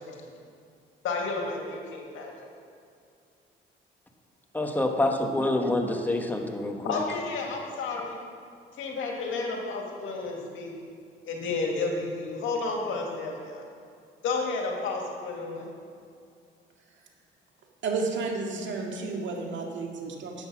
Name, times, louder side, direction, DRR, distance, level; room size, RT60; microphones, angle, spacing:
voice 1, 0.1-0.4 1.0-2.3 6.8-8.2 8.8-10.7 11.2-13.6 14.2-15.7, left 3 dB, 80° left, 0 dB, 2.0 m, -31 dB
voice 2, 4.5-7.0, left 1 dB, 10° left, 3 dB, 1.4 m, -27 dB
voice 3, 17.8-20.5, right 4 dB, 70° right, 1 dB, 2.0 m, -32 dB
11.0 x 8.1 x 6.1 m, 2.4 s
cardioid pair, 90°, 20 cm